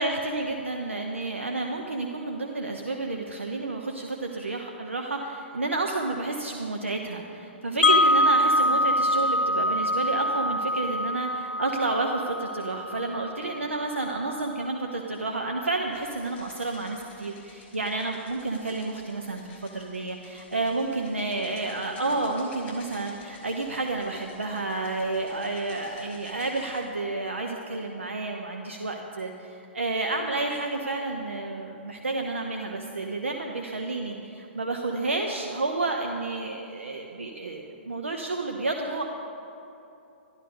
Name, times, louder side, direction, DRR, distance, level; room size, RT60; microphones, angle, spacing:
voice 1, 0.0-39.0, right 2 dB, 90° right, 2 dB, 0.9 m, -30 dB
Wind chime, 7.8-13.8, left 1 dB, 80° left, 0.7 m, -24 dB
sound 1, 15.8-26.9, left 4 dB, 20° left, 3.3 m, -53 dB
12.5 x 12.0 x 5.2 m, 2.8 s
figure-of-eight pair, 120°, 7 cm